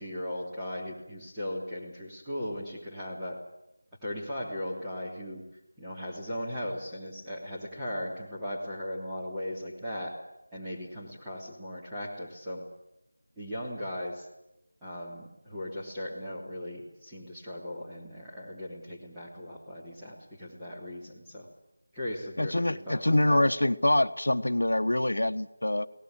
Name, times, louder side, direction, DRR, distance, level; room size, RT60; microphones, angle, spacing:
voice 1, 0.0-3.4 4.0-5.4 5.8-10.2 10.5-12.7 13.4-14.3 14.8-21.5 21.9-23.4, left 1 dB, 5° right, -10 dB, 3.2 m, -38 dB
voice 2, 22.4-25.9, left 1 dB, 80° left, 9 dB, 1.1 m, -25 dB
23.0 x 18.0 x 9.0 m, 0.87 s
figure-of-eight pair, 170°, 0 cm